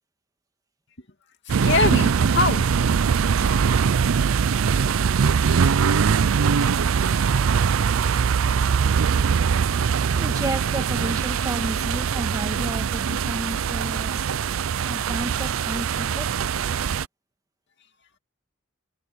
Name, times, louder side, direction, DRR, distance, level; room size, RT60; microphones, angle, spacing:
voice 1, 1.5-3.8, left 3 dB, 60° left, 2.7 m, -26 dB
sound 1, 1.5-17.1, right 6 dB, 85° right, 0.5 m, -22 dB
voice 2, 10.1-14.2 14.9-16.4, right 1 dB, 20° right, 1.9 m, -32 dB
head